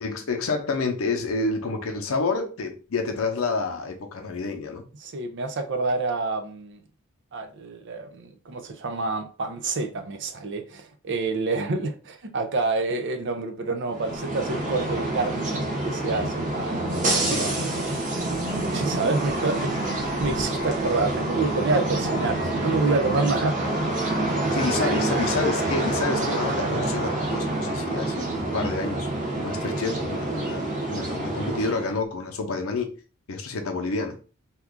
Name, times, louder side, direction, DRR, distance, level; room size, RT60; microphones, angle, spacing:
voice 1, 0.0-4.9 17.3-17.5 24.5-32.9 33.3-34.2, left 3 dB, 80° left, 0.6 m, -29 dB
voice 2, 5.0-6.8 7.3-17.5 18.7-19.7 20.2-23.6 24.8-25.0, right 3 dB, 60° right, 0.6 m, -28 dB
sound 1, 13.9-32.0, right 2 dB, 40° right, 0.9 m, -27 dB
2.9 x 2.4 x 3.6 m
head